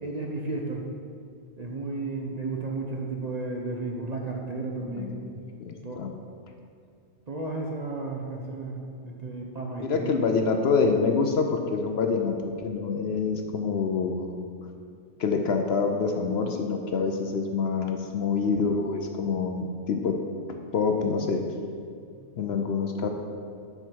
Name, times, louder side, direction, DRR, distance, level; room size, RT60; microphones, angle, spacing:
voice 1, 0.0-0.9 1.6-5.2 5.8-6.0 7.3-10.2 22.0-22.3, right 3 dB, 40° right, -1 dB, 0.7 m, -33 dB
voice 2, 4.9-6.1 9.8-14.4 15.2-20.1 20.7-21.4 22.4-23.1, left 5 dB, 60° left, 4 dB, 0.8 m, -26 dB
7.8 x 5.9 x 4.5 m, 2.4 s
omnidirectional pair, 1.3 m